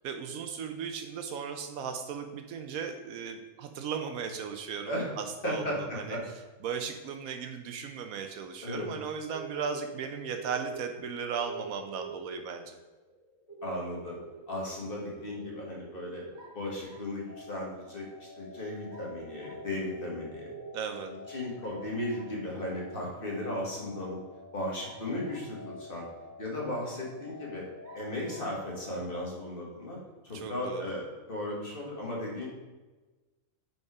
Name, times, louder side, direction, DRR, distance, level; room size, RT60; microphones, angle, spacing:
voice 1, 0.0-4.9 5.2-6.2 6.6-12.7 20.7-21.1 30.3-30.8, right 6 dB, 80° right, 6 dB, 1.0 m, -36 dB
voice 2, 5.4-6.2 8.6-8.9 13.6-14.2 14.5-16.2 16.5-20.5 21.1-24.2 24.5-26.1 26.4-27.6 27.9-30.0 30.2-32.5, left 1 dB, 40° left, -3 dB, 1.8 m, -36 dB
sound 1, 9.3-9.8 10.3-17.7 18.1-18.2 18.5-18.6 18.9-21.0, right 5 dB, 70° left, 2.7 m, -45 dB
sound 2, 16.3-17.2 18.9-19.7 21.6-22.4 24.8-25.7 26.4-26.5 27.8-28.6, right 3 dB, 50° right, 1.3 m, -56 dB
sound 3, 17.3-29.3, left 3 dB, 35° right, 1.5 m, -50 dB
5.2 x 4.8 x 4.7 m, 1.2 s
omnidirectional pair, 1.5 m